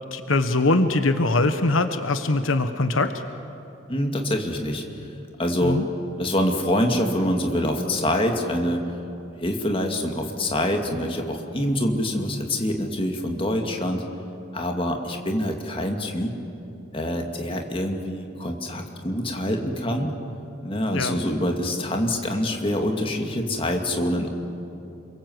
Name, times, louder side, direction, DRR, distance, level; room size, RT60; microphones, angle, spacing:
voice 1, 0.1-3.2 5.6-5.9 20.9-21.2, left 2 dB, 80° left, 9 dB, 1.2 m, -22 dB
voice 2, 3.9-5.1 5.4-5.8 6.2-8.8 9.4-14.0 14.5-16.3 16.9-20.1 20.6-24.3, left 1 dB, 25° left, 2 dB, 2.3 m, -25 dB
29.5 x 22.5 x 8.0 m, 2.8 s
head